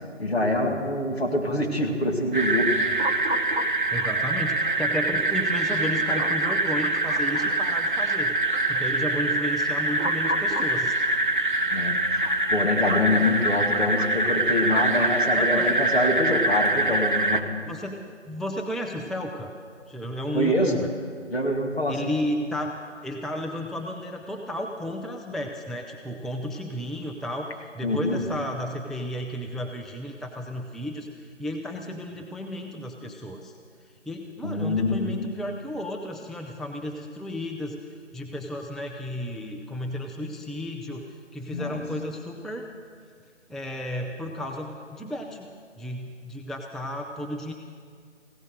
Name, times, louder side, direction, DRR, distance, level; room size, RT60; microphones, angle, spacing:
voice 1, 0.2-2.8 11.7-17.5 20.3-20.8 21.3-22.1 27.8-28.2 34.4-35.1 41.5-41.8, left 1 dB, 55° left, 1 dB, 2.0 m, -25 dB
sound 1, 2.3-17.4, right 2 dB, 45° right, 0.8 m, -24 dB
voice 2, 3.9-8.4 8.7-11.0 15.3-15.7 17.7-19.5 19.9-20.9 21.9-22.7 23.0-33.5 34.1-42.7 43.5-45.5 45.8-47.5, left 1 dB, ahead, 2 dB, 0.4 m, -33 dB
16.0 x 11.0 x 6.7 m, 2.1 s
figure-of-eight pair, 160°, 37 cm